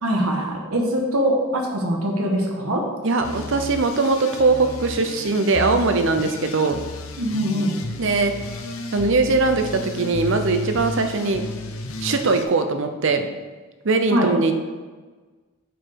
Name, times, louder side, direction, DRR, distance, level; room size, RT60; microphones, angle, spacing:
voice 1, 0.0-2.8 7.2-7.7 14.1-14.3, equal, 75° right, 1 dB, 1.4 m, -22 dB
voice 2, 3.0-6.8 8.0-8.3 8.9-11.4 12.0-13.3 13.8-14.5, right 3 dB, 55° right, 7 dB, 0.6 m, -21 dB
sound 1, 3.2-12.4, left 2 dB, 65° left, 0.7 m, -33 dB
7.8 x 5.0 x 4.7 m, 1.4 s
head